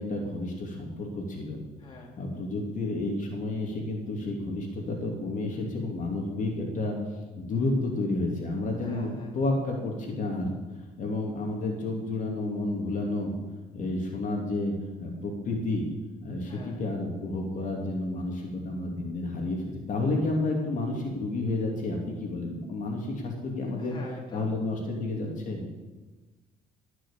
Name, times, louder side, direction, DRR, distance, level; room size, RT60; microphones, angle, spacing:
voice 1, 0.0-1.6 2.2-7.0 7.4-10.5 11.0-13.3 13.7-14.7 15.0-15.9 16.2-24.0 24.3-25.6, left 2 dB, 50° left, 0 dB, 2.8 m, -31 dB
voice 2, 1.8-2.2 8.8-9.4 16.4-16.8 23.8-24.5, left 2 dB, 30° left, -1 dB, 2.9 m, -45 dB
18.0 x 6.4 x 7.3 m, 1.2 s
cardioid pair, 110°, 17 cm